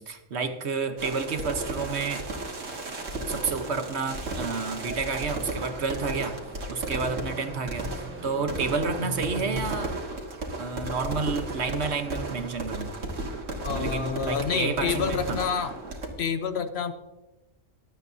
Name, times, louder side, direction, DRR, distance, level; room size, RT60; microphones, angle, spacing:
voice 1, 0.0-2.2 3.3-6.4 6.7-10.0 10.6-13.0 13.7-15.4, right 4 dB, 60° right, 8 dB, 1.3 m, -30 dB
sound 1, 1.0-16.1, right 2 dB, 75° right, 2.1 m, -34 dB
sound 2, 4.7-9.9, right 1 dB, 10° right, 0.9 m, -41 dB
voice 2, 13.6-15.8 16.2-16.9, left 6 dB, 60° left, 10 dB, 0.9 m, -28 dB
23.5 x 8.3 x 2.7 m, 1.0 s
omnidirectional pair, 1.3 m